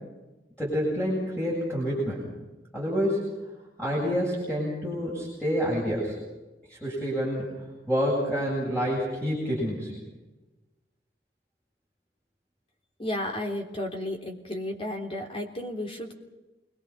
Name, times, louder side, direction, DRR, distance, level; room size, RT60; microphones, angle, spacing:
voice 1, 0.6-2.2 2.7-3.3 3.8-6.2 6.7-7.4 7.9-9.9, equal, 10° left, -6 dB, 7.8 m, -28 dB
voice 2, 13.0-16.1, left 1 dB, 30° left, 2 dB, 3.4 m, -33 dB
28.0 x 22.0 x 5.9 m, 1.1 s
head